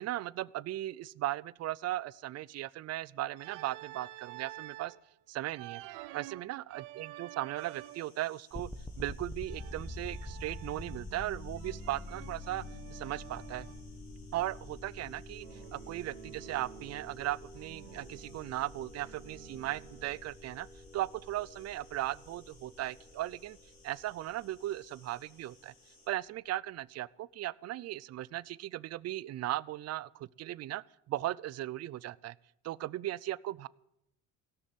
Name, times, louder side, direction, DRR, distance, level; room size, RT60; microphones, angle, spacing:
voice 1, 0.0-4.9 5.3-5.8 6.1-8.7 9.0-13.7 14.3-20.7 20.9-23.6 23.8-25.7 26.1-32.3 32.6-33.7, right 15 dB, 50° right, 21 dB, 0.5 m, -37 dB
Organ, 3.4-5.0 5.5-8.2 9.4-11.2 11.6-13.9 15.4-17.2 17.5-20.3, right 16 dB, 90° right, 0.8 m, -50 dB
sound 1, 7.6-26.1, left 4 dB, 85° left, 5.0 m, -63 dB
sound 2, 8.5-25.4, left 1 dB, 5° left, 1.4 m, -47 dB
17.0 x 6.5 x 9.3 m, 0.81 s
supercardioid pair, 95°, 33 cm